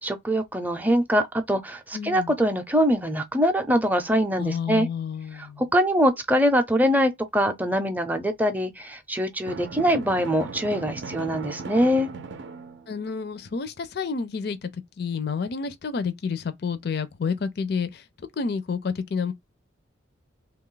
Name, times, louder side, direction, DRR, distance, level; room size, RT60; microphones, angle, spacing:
voice 1, 0.0-4.9 5.3-12.1, equal, 10° right, 0.5 m, -23 dB
voice 2, 1.9-2.3 4.4-5.6 12.9-14.7 15.0-18.0 18.4-19.3, left 5 dB, 55° left, 0.4 m, -29 dB
Drum, 9.4-13.2, right 4 dB, 65° right, 0.5 m, -38 dB
3.0 x 2.4 x 3.7 m
head